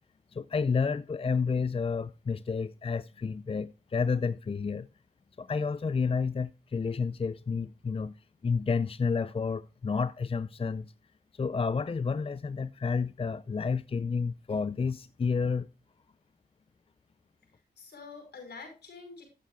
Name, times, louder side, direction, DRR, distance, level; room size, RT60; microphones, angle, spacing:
voice 1, 0.3-4.9 5.4-8.1 8.4-10.9 11.3-15.7, left 5 dB, 35° left, 0.5 m, -30 dB
voice 2, 17.5-19.2, left 4 dB, 75° left, 5.3 m, -47 dB
13.0 x 8.6 x 2.4 m
supercardioid pair, 45°, 17 cm